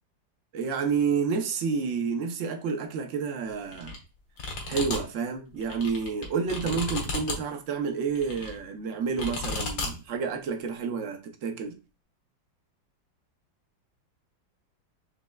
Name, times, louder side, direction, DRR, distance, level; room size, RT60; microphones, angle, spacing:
voice 1, 0.5-3.9 4.7-11.7, right 5 dB, 60° right, 0.8 m, -29 dB
sound 1, 3.7-4.0 4.4-5.0 5.5-7.3 8.2-8.6 9.2-9.9, left 3 dB, 85° left, 1.9 m, -33 dB
6.2 x 3.3 x 2.3 m
omnidirectional pair, 2.0 m